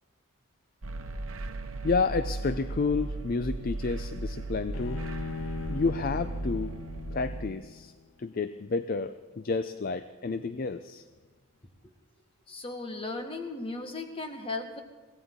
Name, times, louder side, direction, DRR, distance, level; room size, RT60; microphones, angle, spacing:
sound 1, 0.8-7.5, right 2 dB, 65° right, 1.1 m, -36 dB
voice 1, 1.8-5.0 5.7-6.7 7.1-7.9 8.2-11.0, left 4 dB, 40° left, 11 dB, 0.4 m, -30 dB
Bowed string instrument, 4.7-8.0, left 5 dB, 65° left, 0.8 m, -40 dB
voice 2, 12.5-14.8, left 3 dB, 25° left, 5 dB, 1.4 m, -36 dB
22.5 x 16.5 x 3.8 m, 1.4 s
head